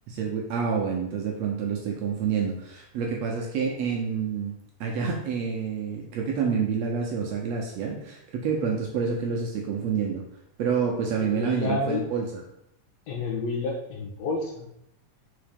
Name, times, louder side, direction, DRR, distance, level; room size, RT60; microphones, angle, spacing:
voice 1, 0.1-4.5 4.8-10.2 10.6-12.4, right 6 dB, 70° right, 0 dB, 1.8 m, -28 dB
voice 2, 11.1-12.0 13.1-14.7, left 3 dB, 65° left, -1 dB, 2.1 m, -30 dB
5.7 x 3.8 x 5.2 m, 0.78 s
omnidirectional pair, 3.6 m